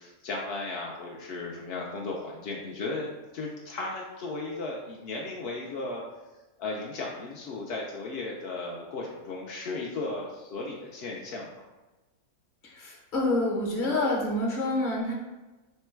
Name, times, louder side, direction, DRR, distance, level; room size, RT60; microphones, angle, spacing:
voice 1, 0.0-6.0 6.6-11.7, left 3 dB, 70° left, -3 dB, 0.6 m, -35 dB
voice 2, 12.6-15.1, left 1 dB, 40° left, -2 dB, 0.8 m, -27 dB
3.7 x 2.1 x 4.4 m, 1.1 s
omnidirectional pair, 1.6 m